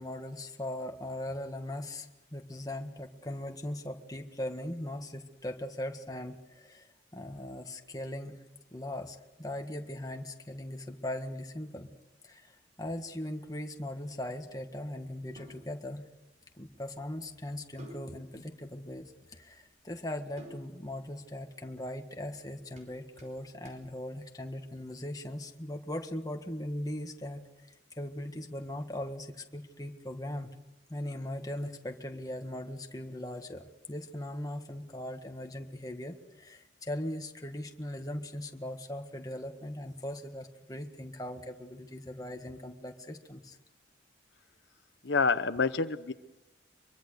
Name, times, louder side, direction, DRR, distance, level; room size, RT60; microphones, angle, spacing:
voice 1, 0.0-8.4 8.7-11.9 12.2-16.0 16.6-30.5 30.9-43.6, left 1 dB, 20° left, 4 dB, 1.7 m, -39 dB
sound 1, 13.5-25.0, right 1 dB, 40° right, 4.7 m, -57 dB
voice 2, 45.0-46.1, left 4 dB, 75° left, 10 dB, 0.8 m, -27 dB
24.5 x 23.5 x 6.7 m, 1.0 s
head